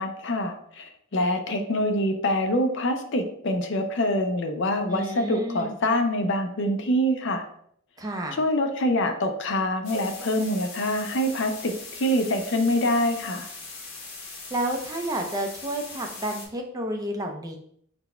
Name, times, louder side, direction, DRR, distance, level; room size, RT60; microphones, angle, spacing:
voice 1, 0.0-7.4 8.3-13.5, left 1 dB, 60° left, 5 dB, 0.6 m, -25 dB
voice 2, 4.9-5.7 8.0-8.4 14.5-17.6, right 1 dB, 20° right, 2 dB, 0.5 m, -30 dB
sound 1, 9.8-16.5, left 3 dB, 75° left, 1.4 m, -40 dB
4.1 x 2.3 x 4.2 m, 0.66 s
head